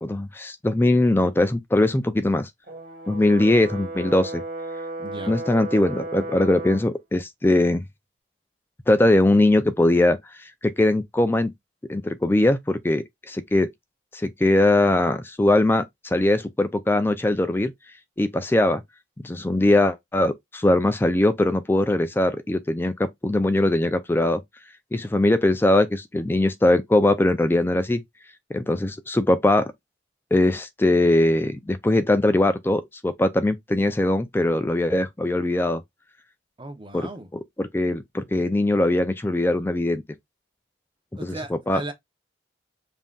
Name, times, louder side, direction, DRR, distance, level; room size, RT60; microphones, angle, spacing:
voice 1, 0.0-2.5 3.1-4.4 5.3-7.8 8.9-11.5 11.9-13.7 14.1-17.7 18.2-18.8 19.2-24.4 24.9-28.0 28.5-29.7 30.3-35.8 36.9-37.1 37.6-40.0 41.2-41.8, left 1 dB, 10° left, 0.3 m, -21 dB
Brass instrument, 2.7-6.9, right 2 dB, 45° right, 1.4 m, -34 dB
voice 2, 5.0-5.4 36.6-37.3 41.2-41.9, right 1 dB, 25° right, 0.7 m, -36 dB
5.4 x 2.6 x 2.3 m
head